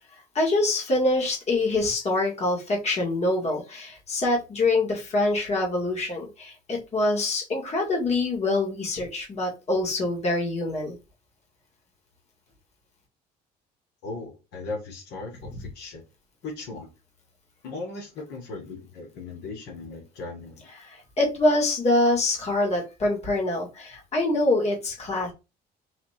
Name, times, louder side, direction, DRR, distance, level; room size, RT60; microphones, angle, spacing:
voice 1, 0.3-11.0 20.8-25.3, left 2 dB, 40° left, 2.1 m, -25 dB
voice 2, 14.0-16.0 16.4-16.9 17.6-20.6, left 3 dB, 85° left, 1.8 m, -37 dB
4.2 x 2.9 x 4.2 m
cardioid pair, 110°, 17 cm